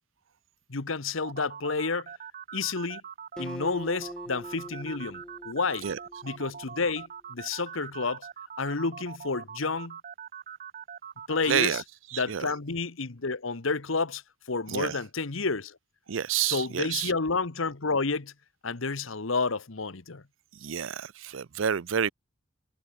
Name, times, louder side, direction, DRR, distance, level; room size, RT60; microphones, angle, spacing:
voice 1, 0.7-2.1 2.5-3.0 3.4-5.9 6.2-8.3 8.6-10.0 11.3-11.8 12.2-14.2 14.5-15.8 16.4-18.3 18.6-20.2, left 4 dB, 80° left, 1.3 m, -30 dB
sound 1, 1.2-11.8, right 7 dB, 40° right, 0.9 m, -43 dB
Acoustic guitar, 3.4-6.9, equal, 5° left, 0.4 m, -42 dB
voice 2, 11.5-11.8 12.1-12.5 14.7-15.0 16.1-17.1 20.5-22.1, right 8 dB, 70° right, 0.6 m, -29 dB
head